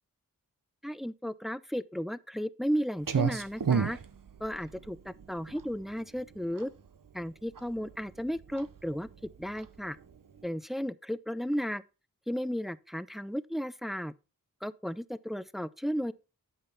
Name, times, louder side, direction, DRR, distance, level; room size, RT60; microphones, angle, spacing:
voice 1, 0.8-4.0 4.4-6.7 7.1-10.0 10.4-11.8 12.3-14.1 14.6-16.1, equal, ahead, 0.4 m, -34 dB
Clock, 3.0-10.5, right 6 dB, 65° right, 0.8 m, -34 dB
8.7 x 5.8 x 4.3 m
wide cardioid pair, 55°, 36 cm